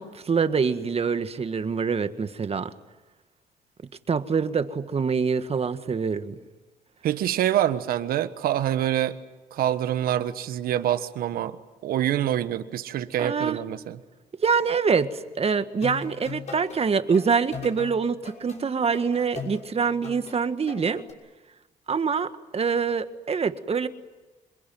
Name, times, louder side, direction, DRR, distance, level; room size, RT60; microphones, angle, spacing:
voice 1, 0.0-2.7 4.1-6.4 13.2-13.6 14.4-21.0 21.9-23.9, right 5 dB, 40° right, 10 dB, 1.7 m, -25 dB
voice 2, 7.0-9.2 9.5-11.6 11.8-14.0, right 11 dB, 75° right, 12 dB, 1.4 m, -26 dB
sound 1, 15.7-16.8 17.1-21.1, left 5 dB, 50° left, 6.2 m, -39 dB
27.0 x 21.5 x 9.3 m, 1.1 s
supercardioid pair, 65°, 15 cm